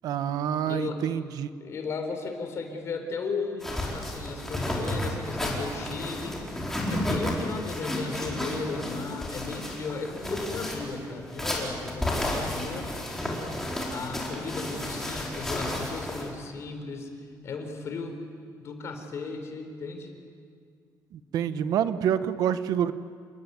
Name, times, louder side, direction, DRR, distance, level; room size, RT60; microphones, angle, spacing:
voice 1, 0.0-1.5 21.1-22.9, right 9 dB, 70° right, 12 dB, 1.1 m, -27 dB
voice 2, 0.7-1.0 1.6-6.4 6.9-12.9 13.9-17.1 17.4-18.3 18.6-20.1, left 4 dB, 45° left, 5 dB, 4.2 m, -35 dB
sound 1, 3.6-16.3, left 1 dB, 5° left, 4.6 m, -32 dB
29.5 x 21.0 x 9.5 m, 2.1 s
cardioid pair, 175°, 7 cm